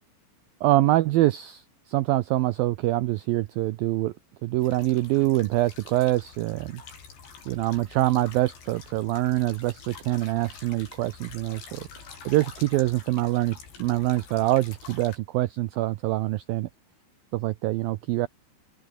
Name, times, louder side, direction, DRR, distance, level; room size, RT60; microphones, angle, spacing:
voice 1, 0.6-4.1 4.4-6.8 7.5-11.9 12.3-16.7 17.3-18.3, right 17 dB, 85° right, 2.0 m, -25 dB
sound 1, 4.6-15.2, left 6 dB, 75° left, 8.1 m, -47 dB
open air
omnidirectional pair, 5.1 m